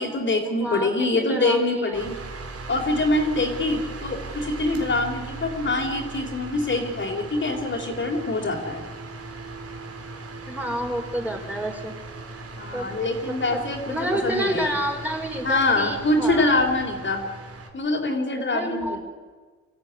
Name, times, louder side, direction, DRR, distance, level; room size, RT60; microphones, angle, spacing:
voice 1, 0.0-2.2 2.7-8.8 12.6-14.7 15.4-17.2 17.7-19.0, left 2 dB, 40° left, 2 dB, 4.1 m, -24 dB
voice 2, 0.6-2.1 10.5-11.9 12.7-12.9 13.3-16.6 18.4-19.0, equal, 5° right, 1 dB, 5.1 m, -29 dB
sound 1, 1.9-17.7, right 3 dB, 50° right, 3.9 m, -38 dB
25.0 x 14.5 x 9.8 m, 1.4 s
cardioid pair, 90°, 30 cm